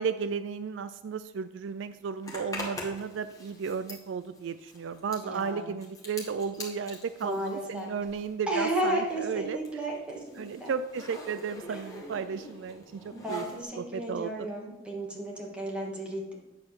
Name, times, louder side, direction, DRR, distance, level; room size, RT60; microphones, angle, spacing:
voice 1, 0.0-9.6 10.4-13.4 13.8-14.5, right 6 dB, 70° right, 12 dB, 0.4 m, -34 dB
Zipper (clothing), 2.2-8.4 8.7-13.6, left 1 dB, 20° left, 1.7 m, -44 dB
voice 2, 5.2-5.7 7.2-7.9 8.5-10.7 11.7-11.8 13.1-16.4, right 1 dB, 5° right, -3 dB, 1.8 m, -33 dB
9.1 x 4.1 x 6.7 m, 1.1 s
head